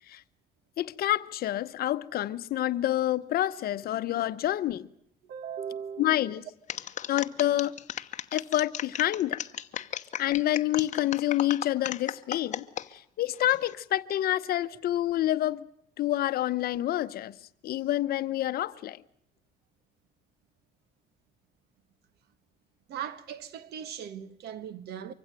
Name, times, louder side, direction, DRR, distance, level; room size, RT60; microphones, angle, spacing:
voice 1, 0.8-4.9 6.0-6.4 7.1-7.7 8.3-9.4 10.2-12.6 12.9-15.7 16.0-17.4 17.6-19.0, left 13 dB, 65° left, 0.9 m, -28 dB
voice 2, 5.2-6.3 22.9-25.1, right 8 dB, 70° right, 1.5 m, -39 dB
sound 1, 6.7-12.9 13.3-13.7, left 10 dB, 45° left, 1.0 m, -35 dB
24.5 x 16.0 x 9.0 m
cardioid pair, 110°, 17 cm